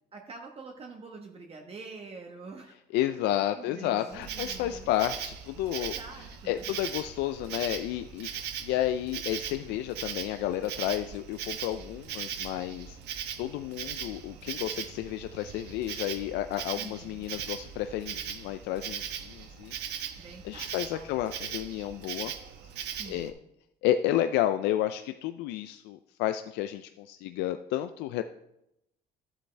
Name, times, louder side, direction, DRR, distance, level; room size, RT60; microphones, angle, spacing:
voice 1, 0.1-2.7 3.5-4.9 5.7-6.7 16.7-17.2 20.2-21.1 22.8-23.4, right 3 dB, 35° right, 1 dB, 1.1 m, -46 dB
voice 2, 2.9-13.0 13.4-19.7 20.4-22.3 23.1-23.3 23.8-28.2, left 12 dB, 90° left, 9 dB, 0.4 m, -31 dB
Insect, 4.1-23.3, right 9 dB, 80° right, 1.0 m, -39 dB
13.0 x 8.0 x 3.3 m, 0.85 s
cardioid pair, 110°, 17 cm